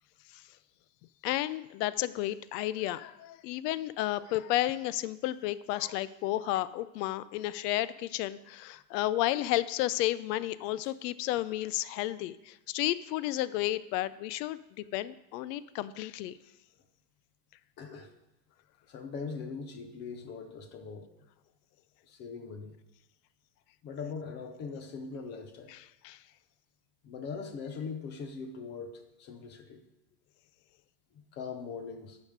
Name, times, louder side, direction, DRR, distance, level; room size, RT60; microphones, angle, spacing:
voice 1, 1.2-16.4 25.7-26.2, left 15 dB, 80° left, 16 dB, 0.5 m, -32 dB
voice 2, 17.8-18.1 18.9-21.1 22.1-22.7 23.8-25.7 27.0-29.8 31.3-32.2, left 5 dB, 25° left, 7 dB, 0.4 m, -41 dB
10.5 x 5.2 x 5.0 m, 0.92 s
cardioid pair, 175°, 49 cm